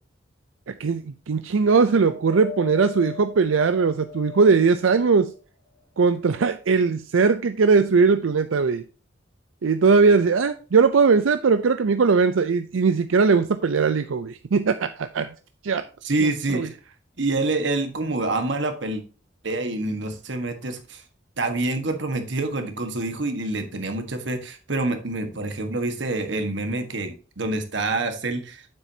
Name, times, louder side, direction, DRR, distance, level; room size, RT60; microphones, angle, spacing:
voice 1, 0.8-5.3 6.0-8.8 9.6-15.3 15.6-15.8 16.2-16.7, right 5 dB, 90° right, 10 dB, 0.5 m, -20 dB
Wind, 1.9-5.4 6.0-7.0 7.8-7.9, left 7 dB, 15° left, 2.3 m, -41 dB
voice 2, 16.0-16.8 17.2-19.0 19.4-21.0 21.4-28.7, right 2 dB, 65° right, 6 dB, 1.5 m, -27 dB
9.1 x 7.8 x 2.8 m, 0.36 s
head